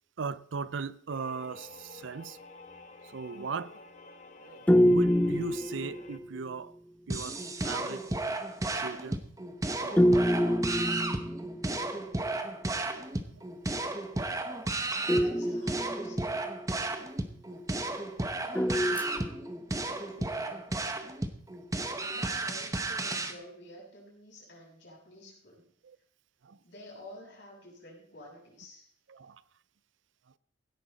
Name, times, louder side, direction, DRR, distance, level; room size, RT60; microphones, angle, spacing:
voice 1, 0.2-2.4 3.1-3.7 4.4-6.7 7.1-7.4 7.6-8.1 8.8-9.2 9.8-10.3 14.5-14.6 25.8-26.0 26.4-26.6 29.1-29.4, right 5 dB, 75° right, 0.5 m, -38 dB
sound 1, 1.1-6.2, left 3 dB, 35° left, 1.1 m, -50 dB
sound 2, 4.7-6.4 10.0-11.8 15.1-16.6 18.6-19.8, equal, 10° left, 0.4 m, -26 dB
sound 3, 7.1-23.3, right 2 dB, 15° right, 0.8 m, -33 dB
voice 2, 15.1-16.5 18.4-19.4 19.7-20.9 22.1-25.7 26.6-28.9, left 1 dB, 65° left, 7.0 m, -50 dB
16.5 x 10.0 x 4.1 m
head